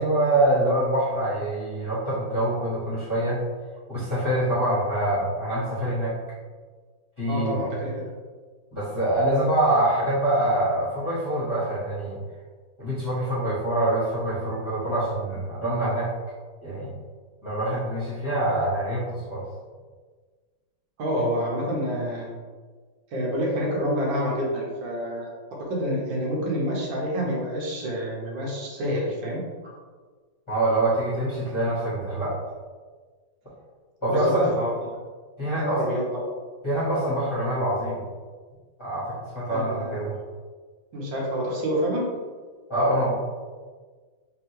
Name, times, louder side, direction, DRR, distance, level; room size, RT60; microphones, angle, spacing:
voice 1, 0.0-3.4 3.9-6.1 7.2-7.6 8.7-12.2 12.8-16.1 16.6-16.9 17.4-19.4 30.5-32.4 34.0-34.5 35.4-35.8 36.6-38.0 38.8-40.1 42.7-43.1, right 1 dB, 15° left, -10 dB, 1.2 m, -25 dB
voice 2, 7.3-8.1 21.0-22.4 23.1-25.3 25.6-29.7 34.1-34.7 35.6-36.3 39.5-40.0 40.9-42.1, equal, 75° right, -4 dB, 1.7 m, -28 dB
3.9 x 3.6 x 3.1 m, 1.5 s
omnidirectional pair, 2.1 m